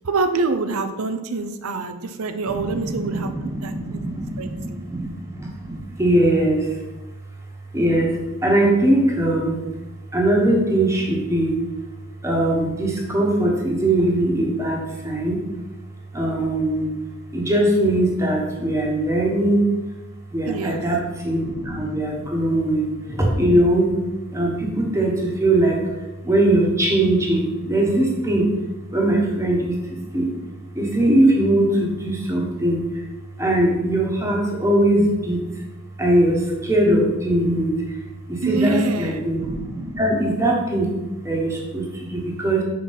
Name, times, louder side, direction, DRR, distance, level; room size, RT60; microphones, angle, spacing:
voice 1, 0.0-4.0 4.4-4.8 20.5-20.8 38.4-39.2, right 4 dB, 85° right, 7 dB, 0.6 m, -26 dB
voice 2, 2.6-6.8 7.7-9.6 10.1-11.5 12.2-15.4 16.1-16.9 17.3-19.7 20.3-23.9 24.3-25.8 26.2-28.5 28.9-29.8 30.1-30.3 30.7-33.0 33.4-35.4 36.0-38.0 38.3-40.9 41.2-42.6, right 1 dB, 15° right, -2 dB, 1.4 m, -21 dB
5.9 x 4.5 x 5.6 m, 1.1 s
head